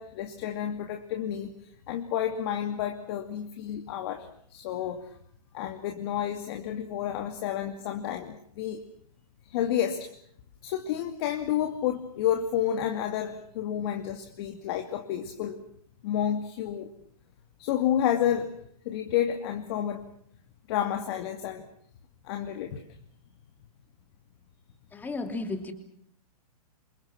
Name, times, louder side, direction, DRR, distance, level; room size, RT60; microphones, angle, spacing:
voice 1, 0.0-1.5 1.9-5.1 5.5-8.8 9.5-10.1 10.6-15.6 16.0-16.9 17.6-18.5 18.8-20.1 20.7-21.7 22.2-22.8, left 10 dB, 40° left, 6 dB, 2.5 m, -30 dB
voice 2, 24.9-25.7, left 3 dB, 10° left, 7 dB, 3.1 m, -33 dB
28.5 x 26.5 x 6.1 m, 0.64 s
hypercardioid pair, 155°, 20 cm